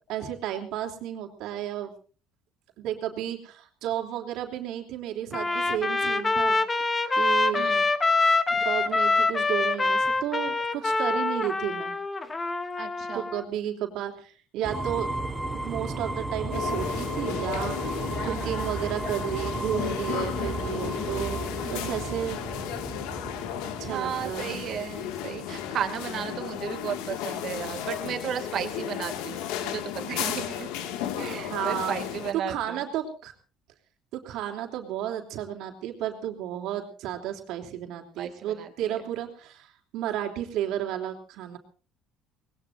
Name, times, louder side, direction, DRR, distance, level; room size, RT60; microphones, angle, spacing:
voice 1, 0.1-1.9 2.8-6.6 7.1-7.7 8.5-11.9 13.1-15.1 15.5-22.4 23.8-24.8 31.5-32.0 32.3-33.3 34.1-41.6, right 11 dB, 60° right, 3 dB, 3.2 m, -32 dB
Trumpet, 5.3-13.4, left 3 dB, 15° left, 1.1 m, -25 dB
voice 2, 7.5-7.9 12.8-13.3 18.2-18.5 20.1-20.3 20.8-21.1 22.5-22.7 23.8-30.7 31.1-32.9 38.2-39.0, right 9 dB, 40° right, 6 dB, 2.5 m, -35 dB
sound 1, 14.6-26.4, right 2 dB, 10° right, 1.8 m, -34 dB
sound 2, 16.5-32.3, left 10 dB, 85° left, 2.1 m, -34 dB
25.5 x 20.0 x 2.7 m, 0.38 s
cardioid pair, 160°, 0 cm